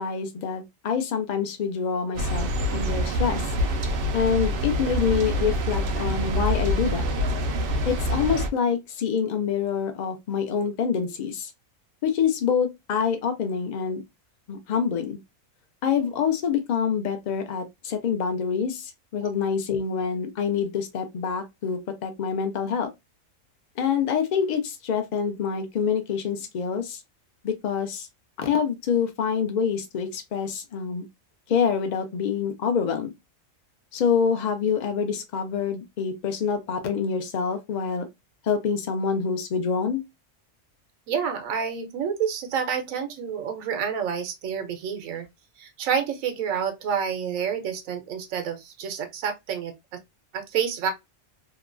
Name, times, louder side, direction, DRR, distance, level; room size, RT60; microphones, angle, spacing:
voice 1, 0.0-3.5 4.1-7.1 7.9-11.5 12.0-14.0 14.5-15.2 15.8-22.9 23.8-27.0 27.4-28.1 28.4-31.1 31.5-33.1 33.9-38.1 38.4-40.0, left 6 dB, 80° left, 0.4 m, -26 dB
sound 1, 2.1-8.5, equal, 65° right, 0.6 m, -26 dB
voice 2, 41.1-45.2 45.6-50.0 50.3-50.9, right 7 dB, 80° right, 1.1 m, -28 dB
2.9 x 2.2 x 2.4 m
omnidirectional pair, 1.4 m